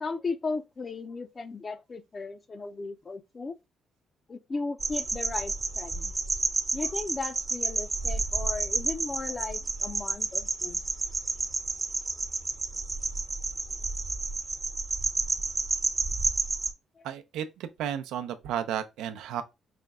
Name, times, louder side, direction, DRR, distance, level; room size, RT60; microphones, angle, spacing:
voice 1, 0.0-3.5 4.3-6.1 6.7-10.8 17.0-17.1, left 4 dB, 35° left, 0.6 m, -36 dB
sound 1, 4.8-16.7, right 3 dB, 25° right, 0.7 m, -30 dB
voice 2, 17.0-19.4, right 9 dB, 90° right, 0.6 m, -33 dB
5.0 x 2.2 x 3.6 m
cardioid pair, 90°, 0 cm